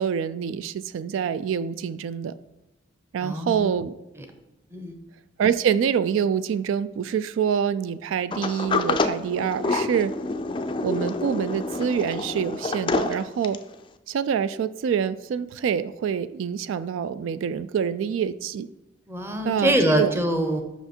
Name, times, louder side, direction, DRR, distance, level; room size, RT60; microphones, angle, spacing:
voice 1, 0.0-2.3 3.1-4.0 5.4-10.1 10.8-13.6 14.1-18.7 19.4-20.1, right 7 dB, 90° right, 16 dB, 0.3 m, -26 dB
voice 2, 3.2-3.7 4.2-4.3 4.7-5.0 19.1-20.6, right 1 dB, 15° right, 5 dB, 0.7 m, -24 dB
Sliding door, 8.3-13.7, left 3 dB, 25° left, 0.3 m, -27 dB
5.8 x 5.7 x 4.4 m, 1.0 s
head